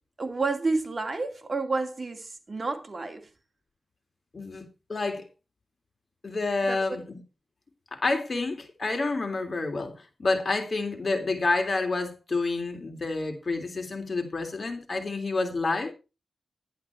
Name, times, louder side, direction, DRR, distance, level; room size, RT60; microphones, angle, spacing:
voice 1, 0.2-3.3 6.7-7.0, right 3 dB, 40° right, 2.5 m, -30 dB
voice 2, 4.3-5.2 6.2-7.2 7.9-9.9 10.2-15.9, left 3 dB, 50° left, 3.3 m, -29 dB
11.5 x 10.0 x 4.6 m
cardioid pair, 65°, 0 cm